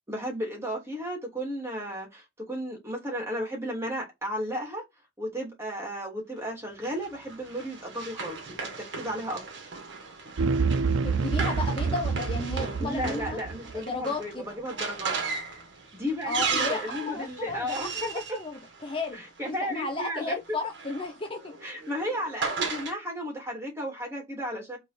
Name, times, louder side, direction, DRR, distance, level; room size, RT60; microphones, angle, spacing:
voice 1, 0.1-4.8 5.2-9.4 12.8-15.2 15.9-18.1 19.1-20.4 21.6-24.8, equal, 15° right, 3.0 m, -34 dB
Run, 6.8-19.5 20.5-22.9, right 4 dB, 65° right, 1.7 m, -36 dB
sound 1, 10.4-13.8, right 4 dB, 90° right, 0.5 m, -27 dB
voice 2, 11.0-13.4 13.7-14.5 16.2-21.6, left 3 dB, 25° left, 0.8 m, -34 dB
5.4 x 3.8 x 5.1 m
head